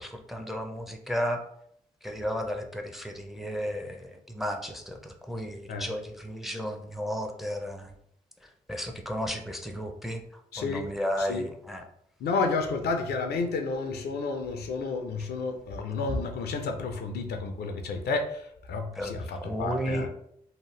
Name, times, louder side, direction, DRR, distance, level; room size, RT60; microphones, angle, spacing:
voice 1, 0.0-1.4 2.0-8.0 8.4-11.8 19.0-19.1 19.4-20.1, equal, ahead, 5 dB, 0.5 m, -33 dB
voice 2, 10.5-11.5 12.2-20.1, left 3 dB, 70° left, 5 dB, 0.5 m, -31 dB
2.7 x 2.0 x 3.1 m, 0.71 s
supercardioid pair, 40°, 17 cm